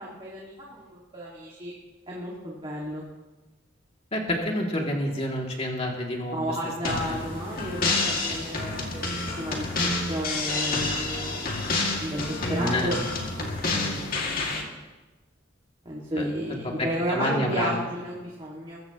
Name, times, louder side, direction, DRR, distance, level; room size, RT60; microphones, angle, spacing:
voice 1, 0.0-1.7 2.1-3.0 6.3-9.7 10.1-11.6 12.0-13.0 13.4-14.4 15.9-18.8, right 1 dB, 30° right, -4 dB, 2.0 m, -33 dB
voice 2, 4.1-6.4 6.8-7.2 12.6-12.9 16.2-16.7 17.1-17.8, left 1 dB, 30° left, 0 dB, 2.5 m, -29 dB
sound 1, 6.8-14.6, left 3 dB, 50° left, 2.2 m, -29 dB
21.5 x 15.0 x 3.0 m, 1.2 s
head